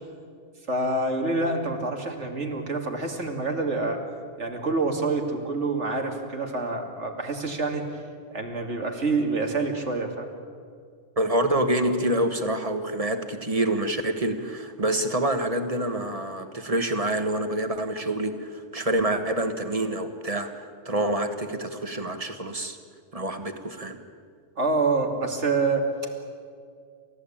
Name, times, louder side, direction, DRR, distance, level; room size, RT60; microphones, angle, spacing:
voice 1, 0.7-4.0 4.4-7.8 8.3-10.3 24.6-25.9, right 3 dB, 90° right, 3 dB, 2.8 m, -27 dB
voice 2, 11.2-22.8 23.1-24.0, right 1 dB, 30° right, 7 dB, 1.6 m, -27 dB
29.0 x 14.5 x 8.8 m, 2.2 s
omnidirectional pair, 1.2 m